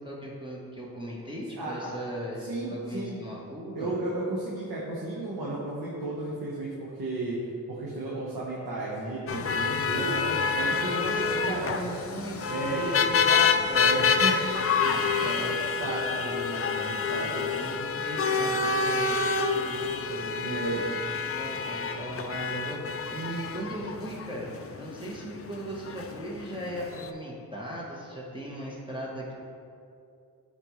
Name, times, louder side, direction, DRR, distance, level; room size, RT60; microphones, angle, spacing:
voice 1, 0.0-3.9 9.9-10.4 10.8-14.0 17.0-19.2 19.5-20.9 21.3-29.3, right 1 dB, 15° right, -5 dB, 1.1 m, -38 dB
voice 2, 1.5-1.9 2.4-3.2 3.7-7.4 7.7-10.2 10.5-11.7 12.5-12.8 13.8-17.4 20.3-20.8, right 2 dB, 75° right, -5 dB, 1.2 m, -34 dB
sound 1, 9.3-27.1, left 5 dB, 40° left, 0.4 m, -28 dB
8.6 x 4.4 x 3.1 m, 2.5 s
cardioid pair, 75°, 38 cm